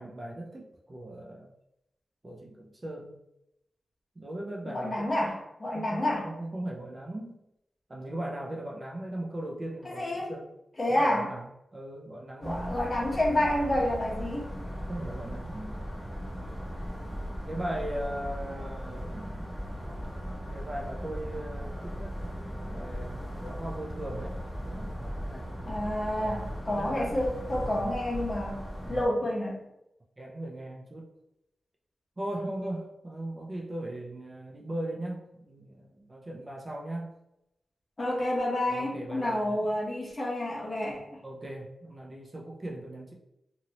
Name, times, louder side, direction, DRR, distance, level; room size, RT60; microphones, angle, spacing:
voice 1, 0.0-1.5 2.2-3.2 4.2-5.2 5.7-7.4 7.9-10.5 10.9-11.5 11.7-12.8 14.9-15.8 17.5-19.8 20.2-24.3 24.7-25.5 26.2-27.9 28.8-29.1 30.2-31.1 32.2-37.1 38.7-39.9 41.2-43.1, right 1 dB, 30° right, -2 dB, 0.6 m, -39 dB
voice 2, 4.6-6.3 9.8-10.3 10.8-11.3 12.4-14.4 19.8-19.9 25.6-29.6 38.0-41.2, left 1 dB, 35° left, -3 dB, 1.1 m, -29 dB
sound 1, 12.4-29.0, equal, 5° left, 1.2 m, -38 dB
2.8 x 2.7 x 3.0 m, 0.85 s
wide cardioid pair, 80°, 0 cm